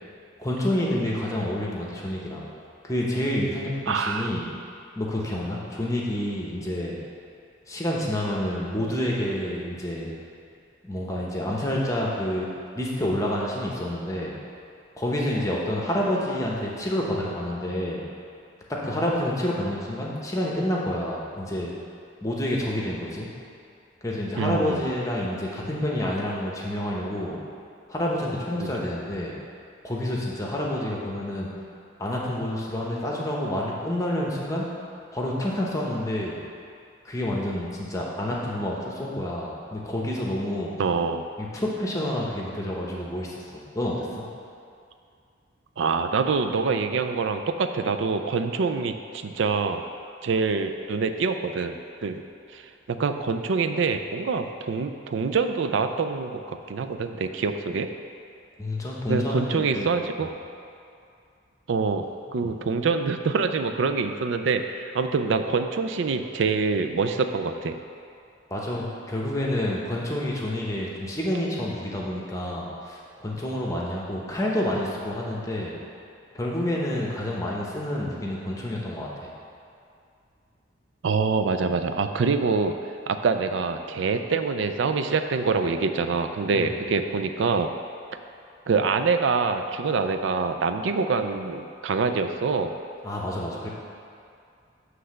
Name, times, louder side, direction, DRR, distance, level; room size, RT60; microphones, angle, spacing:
voice 1, 0.4-2.4 2.8-4.4 5.0-7.0 7.7-10.1 10.8-12.5 12.7-14.3 15.0-18.0 18.7-21.7 22.2-23.3 24.0-27.4 27.9-29.3 29.8-31.5 32.0-34.7 35.1-36.4 37.0-40.7 41.4-44.2 58.6-59.9 60.2-60.3 62.4-62.5 68.5-75.7 76.3-79.1 86.5-86.7 93.0-93.7, left 1 dB, 15° left, -3 dB, 0.9 m, -28 dB
voice 2, 3.9-4.3 24.4-24.9 28.6-28.8 40.8-41.3 45.8-49.8 50.2-52.2 52.5-57.9 59.1-60.3 61.7-62.0 62.3-67.8 81.0-82.7 83.1-87.7 88.7-92.7, right 4 dB, 70° right, 7 dB, 0.4 m, -25 dB
7.8 x 3.3 x 6.4 m, 2.4 s
head